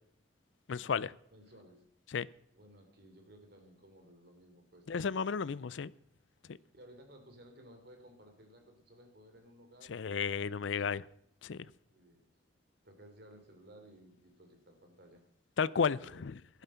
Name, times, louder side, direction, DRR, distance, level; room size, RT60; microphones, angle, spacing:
voice 1, 0.7-1.1 2.1-2.3 4.9-5.9 6.5-6.6 9.9-11.1 11.4-11.6 15.6-16.3, left 6 dB, 75° left, 20 dB, 0.5 m, -33 dB
voice 2, 1.3-1.8 2.5-5.0 6.7-10.5 11.9-12.3 12.8-15.2 15.7-16.2, right 1 dB, 55° right, 5 dB, 3.2 m, -57 dB
13.0 x 11.5 x 5.7 m, 0.70 s
head